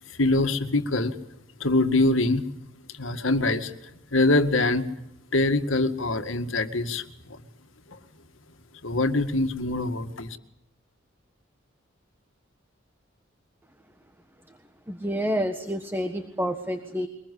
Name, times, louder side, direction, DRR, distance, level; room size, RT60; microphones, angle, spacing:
voice 1, 0.1-1.2 1.6-2.5 2.9-3.7 4.1-4.9 5.3-7.4 7.9-8.0 8.8-10.4, left 2 dB, 70° left, 8 dB, 2.1 m, -24 dB
voice 2, 14.9-17.1, equal, 10° right, 7 dB, 1.5 m, -28 dB
24.0 x 21.0 x 8.4 m, 0.80 s
head